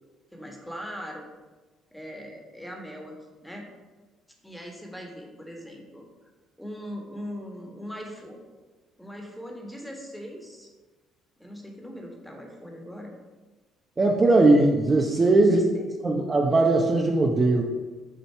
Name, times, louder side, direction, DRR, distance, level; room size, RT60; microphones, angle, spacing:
voice 1, 0.3-1.3 1.9-3.1 3.4-3.7 4.4-6.3 6.6-8.4 9.0-10.7 11.4-13.1 15.1-15.9, equal, 5° left, 0 dB, 1.5 m, -40 dB
voice 2, 14.0-15.6 16.0-17.6, right 2 dB, 30° right, 0 dB, 0.7 m, -19 dB
7.4 x 2.8 x 4.6 m, 1.2 s
hypercardioid pair, 60°, 0 cm